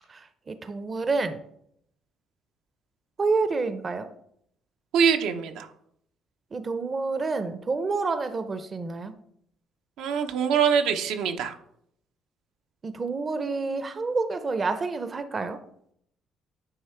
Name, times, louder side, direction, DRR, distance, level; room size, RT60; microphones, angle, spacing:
voice 1, 0.1-1.4 3.2-4.1 6.5-9.1 12.8-15.6, right 4 dB, 30° right, 10 dB, 0.5 m, -28 dB
voice 2, 4.9-5.7 10.0-11.6, right 7 dB, 80° right, 6 dB, 0.7 m, -24 dB
9.3 x 3.2 x 4.4 m, 0.71 s
cardioid pair, 110°, 0 cm